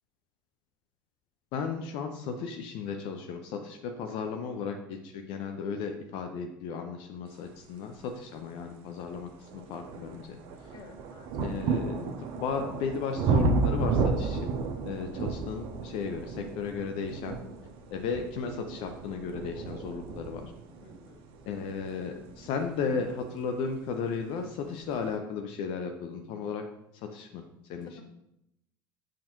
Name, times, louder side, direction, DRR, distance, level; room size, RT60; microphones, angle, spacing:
voice 1, 1.5-10.7 11.4-14.6 14.8-17.4 17.9-20.5 21.5-26.6 26.9-27.4 27.7-28.0, left 5 dB, 55° left, 4 dB, 0.5 m, -35 dB
sound 1, 8.4-8.5 9.1-23.8 24.7-24.8, right 4 dB, 55° right, 0.5 m, -32 dB
voice 2, 10.7-11.6 20.8-21.3 27.8-28.0, left 4 dB, 40° left, 4 dB, 0.9 m, -52 dB
6.9 x 2.4 x 2.9 m, 0.82 s
figure-of-eight pair, 65°, 11 cm